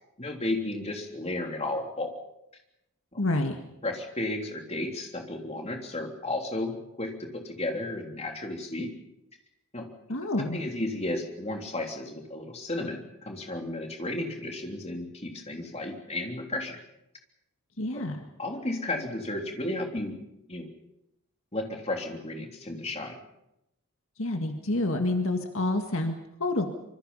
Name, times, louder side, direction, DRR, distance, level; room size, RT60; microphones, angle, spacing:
voice 1, 0.2-2.1 3.1-3.2 3.8-8.9 9.7-9.9 10.4-16.8 17.9-18.0 18.4-20.2 20.5-20.7 21.5-23.2, left 2 dB, 30° left, 2 dB, 3.3 m, -33 dB
voice 2, 3.2-3.6 10.1-10.6 17.8-18.3 24.2-26.7, left 2 dB, 65° left, 4 dB, 1.9 m, -28 dB
26.0 x 24.5 x 5.6 m, 0.86 s
head